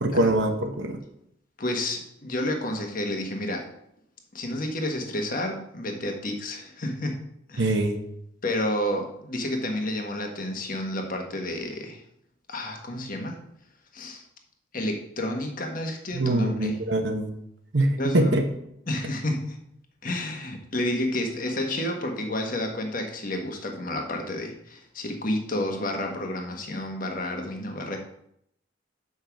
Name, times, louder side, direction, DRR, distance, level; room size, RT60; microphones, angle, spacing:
voice 1, 0.0-1.0 7.6-8.0 16.1-17.3 17.7-18.4, right 1 dB, 65° right, 4 dB, 1.0 m, -23 dB
voice 2, 1.6-3.7 4.3-7.7 8.4-12.0 12.5-13.5 13.9-14.2 14.7-16.8 18.0-18.3 18.9-19.6 20.0-28.0, left 1 dB, 45° left, 3 dB, 1.3 m, -30 dB
7.1 x 5.5 x 5.8 m, 0.74 s
head